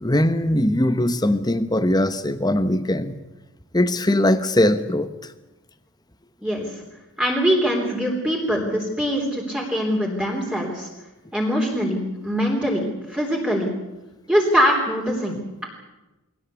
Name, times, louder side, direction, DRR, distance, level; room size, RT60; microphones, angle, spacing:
voice 1, 0.0-3.1 3.7-5.1, left 1 dB, 20° left, 1.1 m, -20 dB
voice 2, 6.4-6.8 7.2-10.9 11.3-13.7 14.3-15.7, equal, 5° right, 3.4 m, -23 dB
23.0 x 17.5 x 8.3 m
head